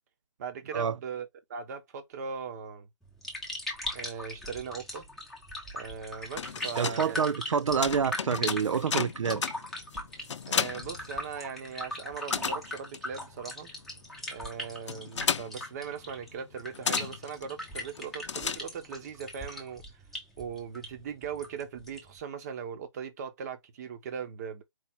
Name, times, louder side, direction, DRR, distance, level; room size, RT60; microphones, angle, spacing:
voice 1, 0.4-2.9 3.9-5.0 5.7-7.3 10.5-13.7 14.3-19.8 20.4-24.6, right 6 dB, 35° right, 1.1 m, -39 dB
sound 1, 3.0-22.2, left 1 dB, ahead, 1.0 m, -40 dB
sound 2, 6.1-11.7 12.0-19.1, left 7 dB, 65° left, 0.6 m, -35 dB
voice 2, 6.8-9.4, right 6 dB, 85° right, 0.5 m, -27 dB
4.6 x 2.7 x 4.0 m
hypercardioid pair, 155°, 16 cm